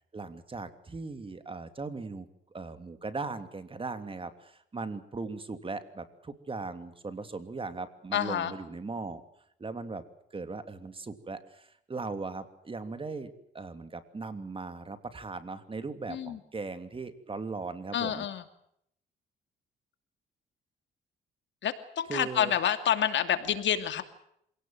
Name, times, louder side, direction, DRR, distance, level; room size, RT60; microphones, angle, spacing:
voice 1, 0.1-2.3 2.5-9.2 9.6-10.0 10.3-13.3 13.5-18.2 22.1-22.5, right 3 dB, 25° right, 10 dB, 3.0 m, -38 dB
voice 2, 8.1-8.5 16.1-16.4 17.9-18.4 21.6-24.0, left 9 dB, 70° left, 10 dB, 2.5 m, -28 dB
27.0 x 18.0 x 7.8 m, 0.73 s
cardioid pair, 90°, 20 cm